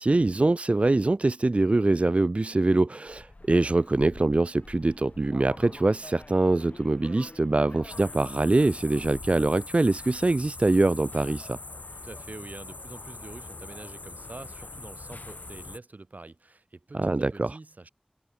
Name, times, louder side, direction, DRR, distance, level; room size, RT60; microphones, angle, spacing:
voice 1, 0.0-11.6 16.9-17.5, right 2 dB, 50° right, 0.3 m, -24 dB
sound 1, 3.1-9.6, left 2 dB, 60° left, 5.2 m, -47 dB
sound 2, 7.9-15.8, left 2 dB, 80° left, 1.3 m, -42 dB
voice 2, 12.0-17.9, right 2 dB, 85° right, 2.4 m, -45 dB
wide cardioid pair, 45°, 3 cm